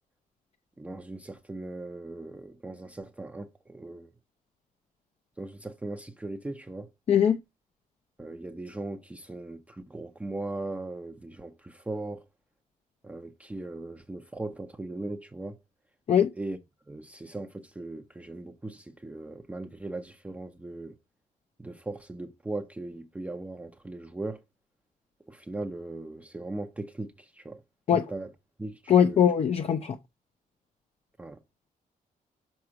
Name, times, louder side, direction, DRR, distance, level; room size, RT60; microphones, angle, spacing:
voice 1, 0.8-4.1 5.4-6.9 8.2-12.2 13.0-15.6 16.3-16.6 16.9-20.9 21.6-24.4 25.3-27.6 27.9-28.3 28.6-28.8 29.1-29.2 31.2-31.4, right 2 dB, 10° right, 0.6 m, -38 dB
voice 2, 7.1-7.4 16.1-16.3 27.9-28.0 28.9-30.0, left 8 dB, 45° left, 0.6 m, -21 dB
6.4 x 4.7 x 5.8 m
wide cardioid pair, 150°, 15 cm